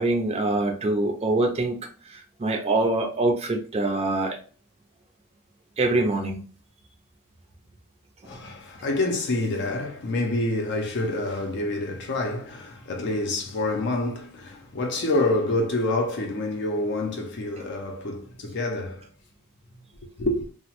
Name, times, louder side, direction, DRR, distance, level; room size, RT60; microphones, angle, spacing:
voice 1, 0.0-1.8 2.1-4.4 5.8-6.4 8.2-8.4, right 2 dB, 30° right, 0.5 m, -24 dB
voice 2, 8.2-19.1 20.2-20.5, left 2 dB, 50° left, 0.5 m, -27 dB
2.8 x 2.1 x 2.9 m
head